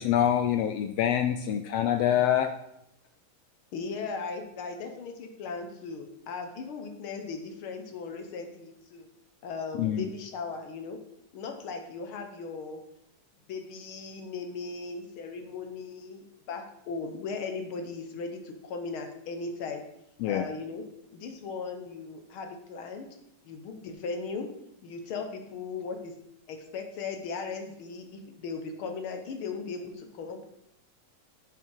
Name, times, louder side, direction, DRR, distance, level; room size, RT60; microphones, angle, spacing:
voice 1, 0.0-2.5 9.8-10.1 20.2-20.5, left 10 dB, 85° left, 8 dB, 1.4 m, -25 dB
voice 2, 3.7-9.1 9.4-11.0 11.3-12.8 13.5-19.8 20.2-20.8 21.1-23.1 23.4-24.5 24.8-26.1 26.5-30.4, left 4 dB, 65° left, 6 dB, 1.4 m, -37 dB
11.0 x 5.5 x 4.7 m, 0.81 s
omnidirectional pair, 3.3 m